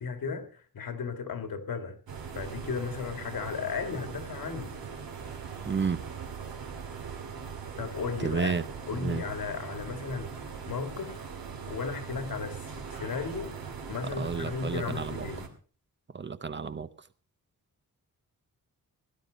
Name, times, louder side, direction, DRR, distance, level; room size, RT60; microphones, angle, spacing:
voice 1, 0.0-2.0 2.4-4.8 7.8-8.6 8.9-11.2 11.7-13.6 13.9-15.5, left 5 dB, 70° left, 2.0 m, -35 dB
sound 1, 2.1-15.5, right 6 dB, 75° right, 2.6 m, -40 dB
voice 2, 5.7-6.0 8.2-8.6 9.0-9.2 14.2-15.3 16.1-16.9, right 5 dB, 30° right, 0.7 m, -31 dB
17.0 x 11.0 x 5.1 m
wide cardioid pair, 120°, 35 cm